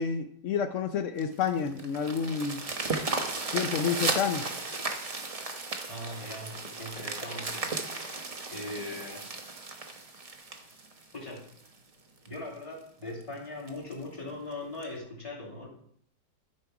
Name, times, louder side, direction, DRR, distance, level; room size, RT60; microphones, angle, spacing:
voice 1, 0.0-2.6 3.5-4.5, left 6 dB, 80° left, 7 dB, 0.6 m, -29 dB
sound 1, 1.2-11.7 12.2-12.3 12.8-12.9 13.2-13.3 13.7-13.9 14.8-14.9, right 3 dB, 30° right, 0.6 m, -35 dB
voice 2, 5.9-7.7 8.0-9.3 11.1-11.5 12.3-15.7, left 2 dB, 15° left, -4 dB, 2.4 m, -40 dB
12.0 x 5.4 x 4.7 m, 0.65 s
omnidirectional pair, 2.0 m